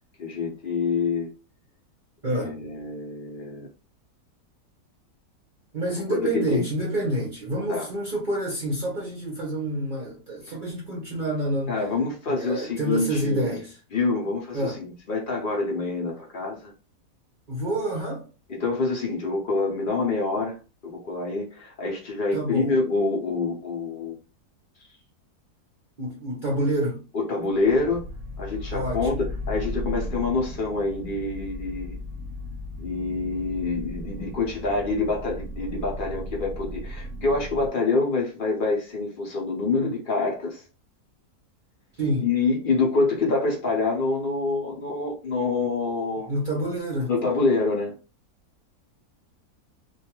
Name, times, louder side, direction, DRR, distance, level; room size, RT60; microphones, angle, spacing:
voice 1, 0.2-1.3 2.2-3.7 6.1-6.6 7.7-7.9 11.7-13.6 13.9-16.7 18.5-20.6 20.8-24.2 27.1-28.0 28.4-32.0 32.8-40.6 42.2-46.3 47.1-47.9, left 3 dB, 60° left, 0.5 m, -26 dB
voice 2, 2.2-2.6 5.7-11.9 12.3-13.8 14.5-14.9 17.5-18.3 22.3-22.8 26.0-27.1 28.7-29.2 42.0-42.3 46.2-47.1, right 1 dB, 50° right, 0.6 m, -28 dB
sound 1, 27.5-37.7, left 1 dB, 70° right, 0.9 m, -35 dB
2.5 x 2.2 x 2.9 m
omnidirectional pair, 1.7 m